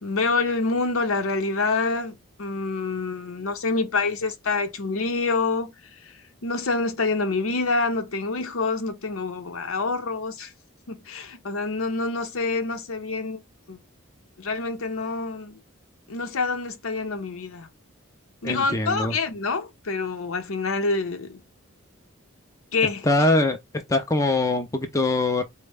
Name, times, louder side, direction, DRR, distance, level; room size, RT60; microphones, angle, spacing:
voice 1, 0.0-5.7 6.0-6.1 6.4-10.5 10.9-13.4 13.7-13.8 14.4-15.6 16.1-17.7 18.4-21.4 22.7-23.0, left 3 dB, 85° left, 0.7 m, -27 dB
voice 2, 18.4-19.2 23.0-23.6 23.9-25.4, left 2 dB, 15° left, 0.4 m, -22 dB
4.1 x 2.1 x 3.3 m
head